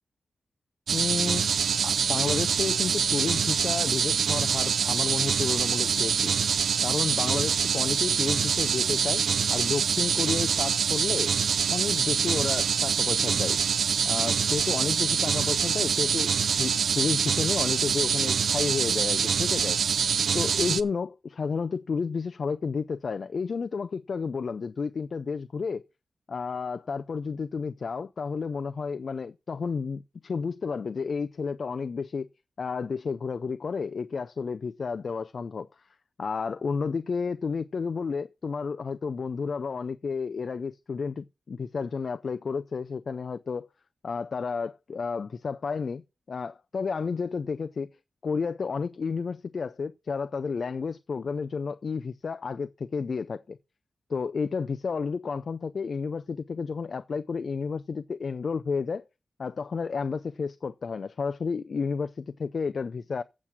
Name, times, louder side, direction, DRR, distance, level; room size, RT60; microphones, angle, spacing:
voice 1, 0.9-1.5 1.8-6.3 6.8-9.2 9.5-11.3 11.7-13.6 14.0-16.3 16.6-19.8 20.3-25.8 26.3-32.3 32.6-35.7 36.2-43.7 44.0-46.0 46.3-47.9 48.2-53.6 54.1-59.0 59.4-63.2, left 5 dB, 55° left, 0.5 m, -31 dB
sound 1, 0.9-20.8, right 6 dB, 85° right, 0.6 m, -25 dB
8.3 x 7.3 x 6.0 m
wide cardioid pair, 125°, 0 cm